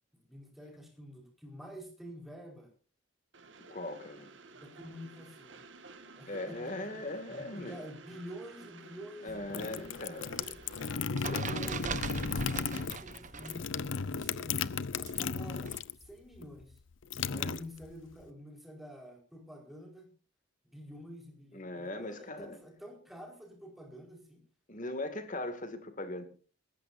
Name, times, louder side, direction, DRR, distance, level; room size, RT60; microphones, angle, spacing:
voice 1, 0.1-2.7 4.5-5.6 6.1-6.9 7.3-10.6 11.0-14.6 14.9-16.8 17.3-20.1 20.6-24.4, equal, ahead, 4.8 m, -48 dB
Train, 3.3-11.0, right 4 dB, 60° right, 1.8 m, -53 dB
voice 2, 3.7-4.3 6.3-7.9 9.2-10.3 11.3-11.4 17.4-17.6 21.5-22.6 24.7-26.3, left 2 dB, 40° left, 2.4 m, -39 dB
sound 1, 9.3-16.1 16.3-18.2, left 5 dB, 65° left, 0.7 m, -35 dB
sound 2, 10.3-13.6 13.9-15.8, right 5 dB, 40° right, 1.0 m, -41 dB
28.0 x 14.5 x 2.7 m
head